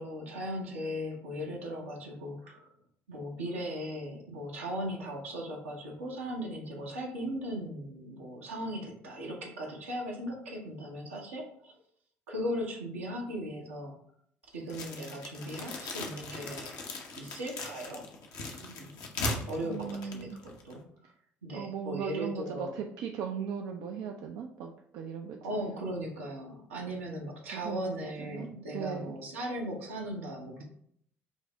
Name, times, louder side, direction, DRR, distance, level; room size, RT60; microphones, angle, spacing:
voice 1, 0.0-2.7 3.1-11.8 12.3-14.0 14.5-16.8 17.2-18.0 18.6-18.9 19.2-20.8 21.4-22.8 25.4-30.6, equal, 85° right, -1 dB, 0.8 m, -38 dB
sound 1, 14.7-20.8, left 2 dB, 60° left, 0.7 m, -39 dB
voice 2, 19.6-20.4 21.5-25.7 27.5-29.2, right 7 dB, 60° right, 2 dB, 0.4 m, -38 dB
5.4 x 2.0 x 3.5 m, 0.67 s
hypercardioid pair, 55°, 7 cm